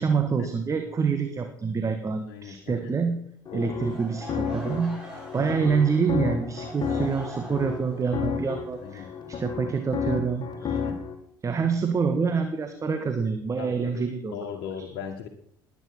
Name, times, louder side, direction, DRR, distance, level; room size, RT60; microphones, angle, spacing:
voice 1, 0.0-3.2 3.5-10.8 11.4-14.4 14.8-14.9, right 5 dB, 30° right, 7 dB, 1.7 m, -27 dB
voice 2, 2.3-2.8 3.5-3.9 5.4-5.5 8.8-9.1 10.6-11.0 13.6-14.0 14.3-15.3, left 8 dB, 55° left, 1 dB, 1.9 m, -38 dB
sound 1, 3.5-11.1, left 6 dB, 35° left, 2.7 m, -32 dB
Laughter / Crowd, 3.8-9.7, right 1 dB, 5° right, 7.7 m, -44 dB
20.0 x 9.3 x 6.1 m, 0.67 s
figure-of-eight pair, 60°, 11 cm